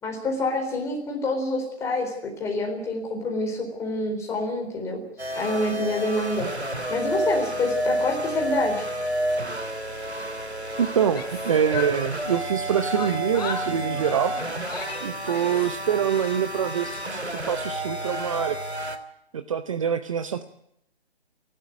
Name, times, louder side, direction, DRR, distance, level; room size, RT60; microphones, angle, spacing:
voice 1, 0.0-5.0 5.4-6.5 6.9-8.9, left 2 dB, 10° left, 1 dB, 4.0 m, -27 dB
sound 1, 5.2-19.0, right 1 dB, 80° right, 3.1 m, -30 dB
voice 2, 10.8-14.3 15.0-18.6 19.3-20.4, right 8 dB, 30° right, 10 dB, 0.9 m, -25 dB
Yell, 11.0-12.6 12.9-15.8, left 5 dB, 40° left, 4.1 m, -37 dB
29.5 x 12.5 x 9.1 m, 0.78 s
figure-of-eight pair, 140°, 32 cm